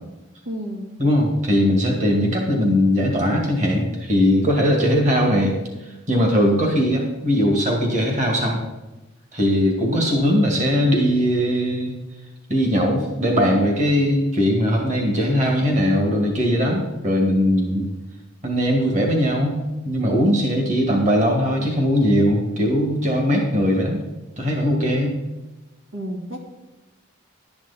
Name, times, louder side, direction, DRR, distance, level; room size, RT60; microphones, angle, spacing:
voice 1, 0.5-1.0 25.9-26.4, equal, 85° right, 0 dB, 2.4 m, -31 dB
voice 2, 1.0-5.6 6.1-8.6 9.3-11.9 12.5-17.8 18.4-24.0 24.4-25.2, equal, 35° right, 1 dB, 2.2 m, -20 dB
11.5 x 9.5 x 4.3 m, 1.1 s
head